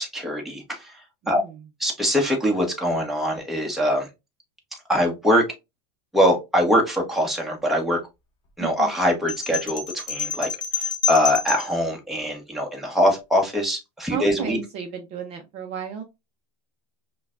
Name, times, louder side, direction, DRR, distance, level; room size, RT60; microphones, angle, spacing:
voice 1, 0.0-1.4 1.8-4.1 4.9-5.5 6.1-8.0 8.6-14.6, equal, ahead, -1 dB, 1.0 m, -23 dB
voice 2, 1.2-1.6 8.6-8.9 14.1-16.0, right 8 dB, 35° right, 5 dB, 0.6 m, -33 dB
sound 1, 9.3-11.8, left 6 dB, 25° left, 0.9 m, -28 dB
5.5 x 2.2 x 2.4 m, 0.23 s
supercardioid pair, 150°, 19 cm